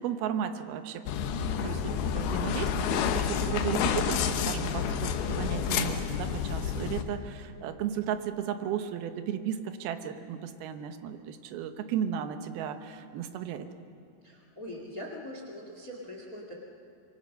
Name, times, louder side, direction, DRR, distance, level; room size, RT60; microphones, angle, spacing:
voice 1, 0.0-13.7, right 9 dB, 70° right, 8 dB, 2.8 m, -35 dB
sound 1, 1.1-7.0, left 8 dB, 75° left, 2.9 m, -29 dB
voice 2, 14.2-16.5, left 1 dB, 30° left, 1 dB, 1.8 m, -42 dB
25.5 x 23.5 x 6.5 m, 2.5 s
omnidirectional pair, 4.8 m